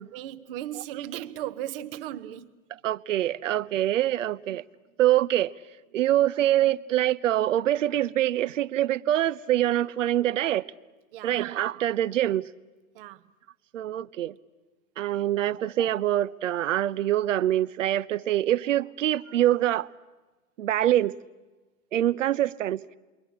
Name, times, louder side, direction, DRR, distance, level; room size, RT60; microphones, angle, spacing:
voice 1, 0.1-2.5 11.1-11.5 12.9-13.2, right 12 dB, 40° right, 1.1 m, -36 dB
voice 2, 2.8-4.6 5.0-5.5 5.9-10.7 11.2-12.5 13.7-14.3 15.0-19.9 20.6-21.2 21.9-22.9, right 12 dB, 65° right, 0.8 m, -25 dB
28.0 x 23.0 x 8.6 m
hypercardioid pair, 115°, 41 cm